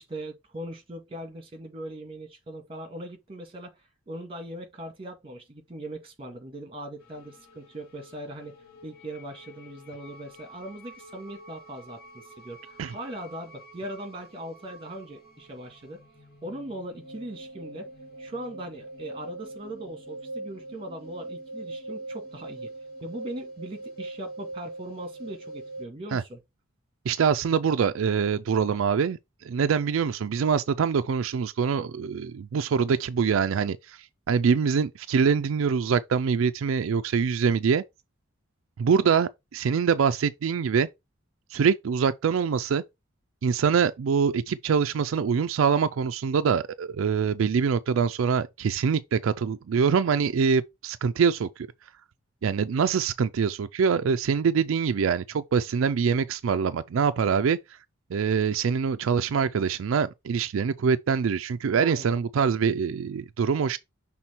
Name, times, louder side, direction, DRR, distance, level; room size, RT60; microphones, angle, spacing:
voice 1, 0.0-3.8 4.1-16.0 16.4-17.9 18.2-22.7 23.0-26.4 61.7-62.1, right 1 dB, 25° right, 1.8 m, -40 dB
sound 1, 7.0-25.8, right 2 dB, 50° left, 2.5 m, -43 dB
voice 2, 27.1-29.2 29.4-37.8 38.8-40.9 41.5-42.8 43.4-51.7 52.4-57.6 58.1-63.8, right 6 dB, 75° right, 0.4 m, -24 dB
6.0 x 3.7 x 4.4 m
head